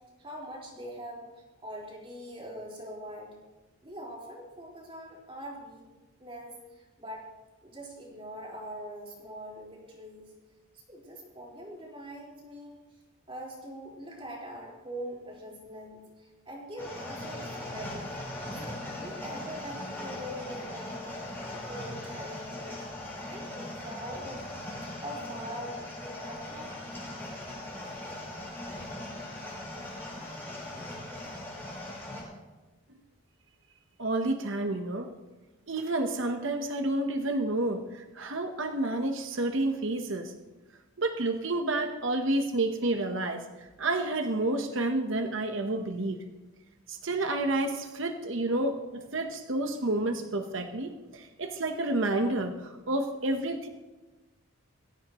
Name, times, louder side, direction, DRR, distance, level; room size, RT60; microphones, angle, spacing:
voice 1, 0.2-1.3 1.6-3.4 3.8-5.9 6.2-7.3 7.6-10.3 10.7-12.8 13.3-18.1 18.5-24.4 24.9-26.7, equal, 25° right, -3 dB, 4.4 m, -43 dB
sound 1, 16.8-32.2, left 1 dB, 10° left, 5.3 m, -39 dB
voice 2, 34.0-35.1 35.7-40.3 41.0-46.2 46.9-53.7, right 2 dB, 55° right, 6 dB, 1.1 m, -30 dB
22.0 x 16.5 x 3.1 m, 1.1 s
head